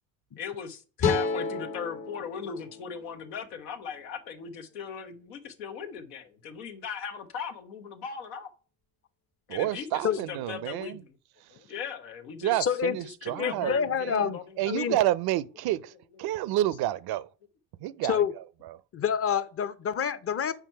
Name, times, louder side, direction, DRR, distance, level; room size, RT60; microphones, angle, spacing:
voice 1, 0.4-8.5 9.5-11.1 11.5-12.6 12.9-14.7, left 6 dB, 85° left, 0.9 m, -39 dB
sound 1, 1.0-4.2, left 4 dB, 55° left, 1.4 m, -32 dB
voice 2, 9.5-11.0 11.4-11.5 12.4-17.3 17.8-18.8, right 14 dB, 60° right, 0.5 m, -30 dB
voice 3, 12.6-13.0 13.4-14.4 14.7-15.0 18.0-18.3 18.9-20.5, left 7 dB, 35° left, 0.7 m, -27 dB
5.8 x 4.6 x 4.4 m
hypercardioid pair, 60°, 42 cm